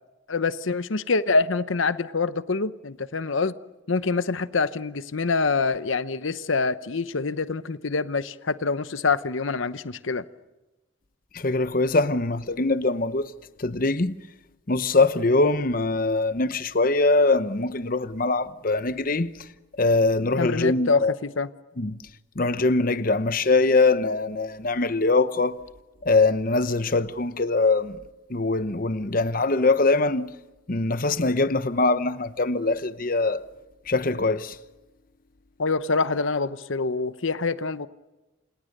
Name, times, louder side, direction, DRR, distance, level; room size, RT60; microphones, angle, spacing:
voice 1, 0.3-3.5 3.9-10.2 20.4-21.5 35.6-37.9, left 4 dB, 80° left, 0.9 m, -25 dB
voice 2, 11.3-13.3 13.6-14.2 14.7-19.3 19.8-21.2 21.8-22.0 22.4-25.6 26.0-28.0 28.3-30.3 30.7-33.4 33.9-34.6, left 3 dB, 45° left, 0.9 m, -22 dB
28.5 x 28.0 x 6.7 m
head